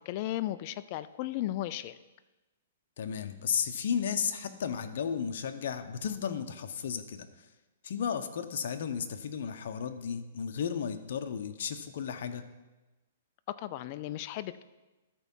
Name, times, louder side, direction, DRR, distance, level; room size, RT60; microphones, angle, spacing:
voice 1, 0.1-2.0 13.5-14.6, left 14 dB, 40° left, 14 dB, 0.4 m, -35 dB
voice 2, 3.0-7.3 7.8-12.4, left 7 dB, 65° left, 8 dB, 0.8 m, -34 dB
13.5 x 4.6 x 5.4 m, 1.1 s
hypercardioid pair, 155°, 0 cm